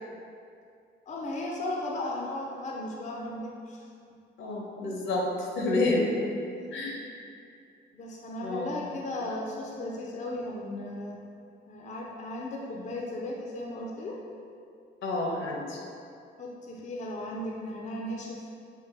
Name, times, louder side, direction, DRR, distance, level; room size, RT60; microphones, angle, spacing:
voice 1, 1.1-3.9 7.9-11.2 11.7-14.2 16.4-18.4, left 1 dB, 40° left, -2 dB, 0.5 m, -36 dB
voice 2, 4.4-6.1 6.7-7.0 8.4-8.7 15.0-15.8, left 2 dB, 70° left, -2 dB, 0.8 m, -29 dB
4.7 x 2.5 x 3.7 m, 2.4 s
cardioid pair, 90°, 20 cm